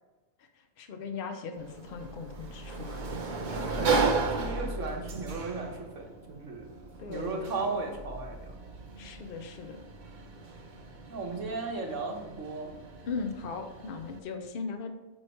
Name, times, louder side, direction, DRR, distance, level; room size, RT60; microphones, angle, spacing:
voice 1, 0.4-3.0 7.0-7.7 9.0-9.8 13.1-14.9, left 4 dB, 50° left, 6 dB, 0.8 m, -38 dB
Sliding door, 1.5-14.2, right 4 dB, 45° right, 0.8 m, -35 dB
voice 2, 3.5-6.7 7.1-8.6 11.1-12.7, right 3 dB, 70° right, 2 dB, 1.3 m, -35 dB
8.8 x 3.1 x 4.4 m, 1.2 s
omnidirectional pair, 1.4 m